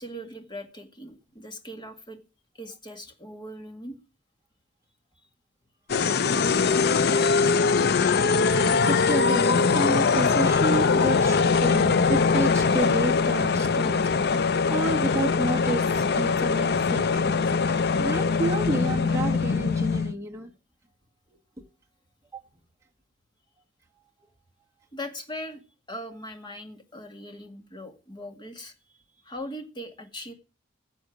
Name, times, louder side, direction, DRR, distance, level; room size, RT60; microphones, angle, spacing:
voice 1, 0.0-2.2 2.5-4.0 14.7-14.9 24.9-25.6 25.9-28.7 29.2-30.3, equal, 25° left, 1.9 m, -40 dB
sound 1, 5.9-20.1, left 5 dB, 55° left, 0.5 m, -22 dB
voice 2, 8.8-15.8 16.1-20.5 22.3-22.4, right 2 dB, 15° right, 1.4 m, -31 dB
16.5 x 7.0 x 6.2 m
head